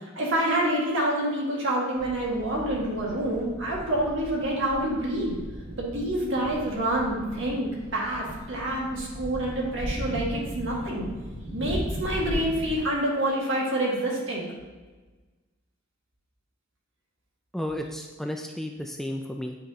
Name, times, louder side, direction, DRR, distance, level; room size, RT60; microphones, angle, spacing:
voice 1, 0.2-5.3 5.8-11.1 11.5-14.5, right 1 dB, 65° right, -3 dB, 1.7 m, -27 dB
sound 1, 2.0-12.8, equal, 35° right, 1.5 m, -37 dB
voice 2, 17.5-19.6, left 1 dB, ahead, 3 dB, 0.3 m, -33 dB
8.9 x 4.7 x 2.8 m, 1.3 s
head